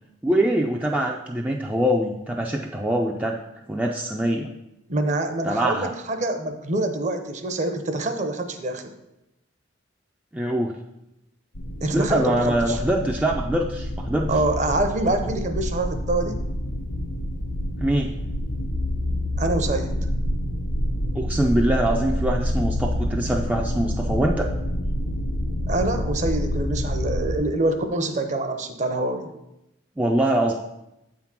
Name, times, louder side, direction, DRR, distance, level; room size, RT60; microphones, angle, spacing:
voice 1, 0.2-3.4 3.7-4.5 5.4-5.9 10.3-10.8 11.9-14.4 17.8-18.1 21.1-24.5 30.0-30.5, right 1 dB, 5° right, 0 dB, 0.3 m, -23 dB
voice 2, 4.9-8.9 11.8-12.8 14.3-16.4 19.4-19.9 25.7-29.3, right 2 dB, 35° right, 7 dB, 0.6 m, -25 dB
sound 1, 11.6-27.4, equal, 80° left, 1.0 m, -27 dB
7.8 x 3.7 x 5.9 m, 0.90 s
head